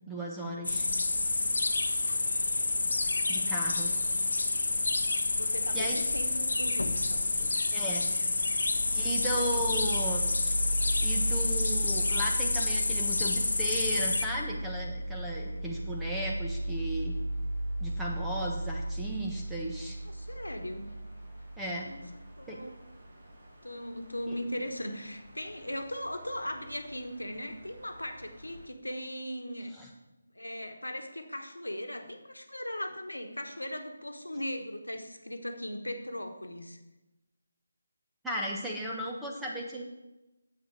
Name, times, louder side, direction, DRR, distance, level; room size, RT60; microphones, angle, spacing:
voice 1, 0.1-0.9 3.3-4.0 5.7-6.0 7.4-8.2 8.9-10.3 11.0-17.2 17.8-20.0 21.6-21.9 22.5-22.6 24.3-24.4 29.8-29.9 38.2-39.8, equal, 5° right, -3 dB, 1.4 m, -35 dB
sound 1, 0.6-14.2, left 3 dB, 65° left, 0.9 m, -29 dB
voice 2, 5.3-7.2 9.4-9.5 20.0-21.0 21.8-22.0 22.4-22.8 23.1-23.2 23.6-29.7 30.3-36.8, left 1 dB, 90° left, 5 dB, 1.4 m, -38 dB
sound 2, 8.7-28.6, right 1 dB, 55° right, 3.2 m, -37 dB
9.9 x 8.1 x 4.8 m, 1.0 s
figure-of-eight pair, 155°, 0 cm